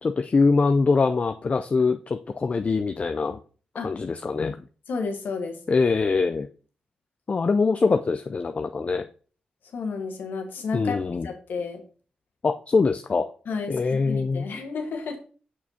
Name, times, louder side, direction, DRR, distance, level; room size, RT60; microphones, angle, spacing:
voice 1, 0.0-3.4 3.7-4.6 5.7-6.5 7.3-9.1 10.7-11.3 12.4-13.3 13.7-14.5, left 4 dB, 40° left, 8 dB, 0.4 m, -23 dB
voice 2, 4.9-5.6 9.7-11.8 13.5-15.2, left 4 dB, 75° left, 4 dB, 1.2 m, -31 dB
6.3 x 5.9 x 2.7 m, 0.40 s
supercardioid pair, 50°, 3 cm